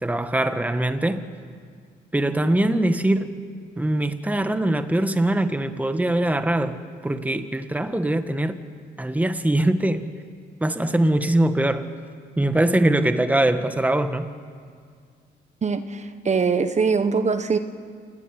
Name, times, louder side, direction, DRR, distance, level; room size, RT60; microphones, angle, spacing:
voice 1, 0.0-1.2 2.1-3.3 3.8-8.6 9.0-10.0 10.6-11.9 12.4-14.3, right 1 dB, 10° right, 1.5 m, -22 dB
voice 2, 15.6-17.6, right 5 dB, 35° right, 1.4 m, -22 dB
28.5 x 18.5 x 10.0 m
cardioid pair, 90°, 20 cm